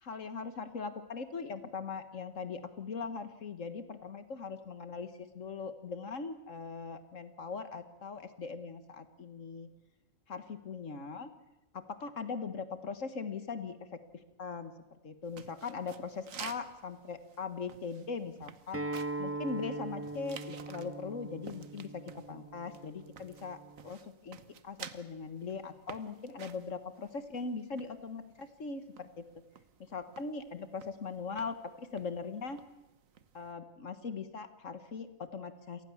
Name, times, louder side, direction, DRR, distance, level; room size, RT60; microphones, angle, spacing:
voice 1, 0.0-9.7 10.3-11.3 11.7-13.8 14.4-18.8 19.2-23.6 23.8-24.4 24.6-29.2 29.8-32.6 33.3-35.8, left 5 dB, 75° left, 11 dB, 1.8 m, -40 dB
sound 1, 15.2-33.5, right 8 dB, 85° right, 1.5 m, -53 dB
Acoustic guitar, 18.7-23.9, right 2 dB, 10° right, 1.2 m, -41 dB
27.5 x 19.5 x 7.2 m, 0.94 s
omnidirectional pair, 1.4 m